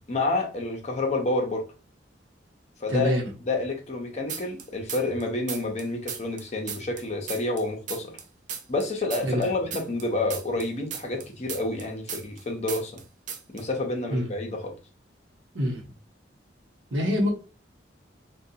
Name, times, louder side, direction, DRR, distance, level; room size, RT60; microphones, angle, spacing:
voice 1, 0.1-1.6 2.8-8.2 8.7-12.9 13.5-14.7, left 2 dB, 35° left, 0.7 m, -29 dB
voice 2, 2.9-3.3 9.2-9.5 14.1-14.3 15.5-15.8 16.9-17.3, equal, 75° right, 0.9 m, -25 dB
sound 1, 4.3-5.2 5.5-8.2 8.5-12.4 12.7-13.0 13.3-13.6, right 7 dB, 40° right, 0.4 m, -36 dB
3.8 x 2.3 x 2.7 m
head